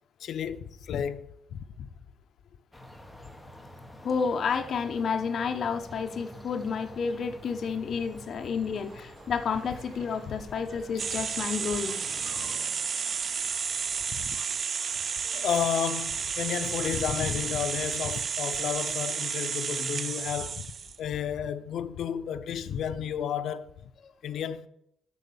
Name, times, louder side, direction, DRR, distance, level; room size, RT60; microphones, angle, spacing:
voice 1, 0.2-1.9 6.6-6.8 10.3-10.4 14.1-14.4 15.3-20.7 21.0-23.7 24.2-24.7, left 8 dB, 70° left, 0.6 m, -32 dB
sound 1, 2.7-12.5, left 1 dB, 5° left, 1.2 m, -48 dB
voice 2, 4.0-12.8 14.3-14.5 24.0-24.1, left 5 dB, 50° left, 1.0 m, -31 dB
sound 2, 8.6-18.2, right 3 dB, 70° right, 2.8 m, -54 dB
sound 3, 11.0-21.0, right 6 dB, 40° right, 0.3 m, -32 dB
8.2 x 6.4 x 7.2 m
cardioid pair, 150°, 0 cm